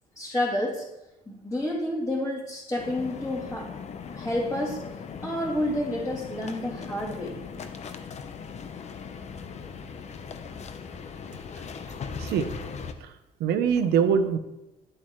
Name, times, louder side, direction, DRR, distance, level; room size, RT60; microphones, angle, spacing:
voice 1, 0.1-0.8 1.3-3.7 4.1-4.8 5.2-7.3, left 1 dB, 15° left, -9 dB, 3.4 m, -29 dB
sound 1, 2.8-12.9, left 6 dB, 40° left, 0.8 m, -39 dB
voice 2, 13.4-14.4, right 7 dB, 80° right, 9 dB, 1.0 m, -23 dB
11.0 x 7.5 x 3.2 m, 0.94 s
cardioid pair, 110°, 17 cm